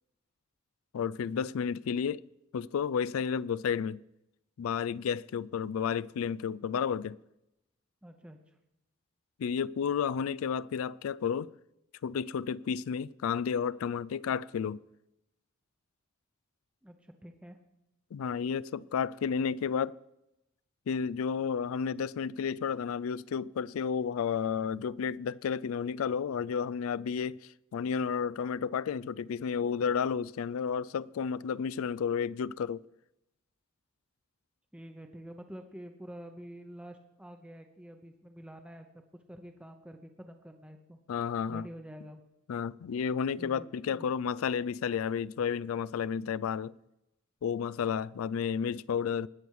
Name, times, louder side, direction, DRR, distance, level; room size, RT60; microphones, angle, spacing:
voice 1, 0.9-2.2 2.5-4.0 4.6-7.2 9.4-11.5 12.0-14.8 18.1-20.0 20.9-32.8 41.1-41.7 42.5-46.7 47.4-49.3, left 7 dB, 90° left, 0.3 m, -32 dB
voice 2, 8.0-8.5 16.8-17.6 34.7-39.0 39.3-41.0 41.5-42.2 43.4-44.1, equal, 5° right, 0.7 m, -48 dB
19.5 x 7.1 x 4.6 m
head